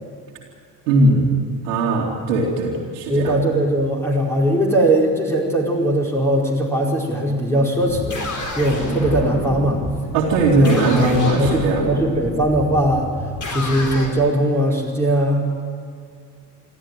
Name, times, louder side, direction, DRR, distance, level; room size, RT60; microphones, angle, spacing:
voice 1, 0.9-1.3 1.6-3.4 10.1-12.0, right 2 dB, 70° right, -5 dB, 2.9 m, -18 dB
voice 2, 3.1-8.3 8.6-9.8 10.5-10.8 11.4-13.1 13.5-15.6, right 1 dB, 5° left, -3 dB, 4.8 m, -20 dB
sound 1, 7.7-14.1, left 2 dB, 35° left, 4.5 m, -28 dB
27.5 x 12.5 x 9.3 m, 2.3 s
figure-of-eight pair, 50°, 49 cm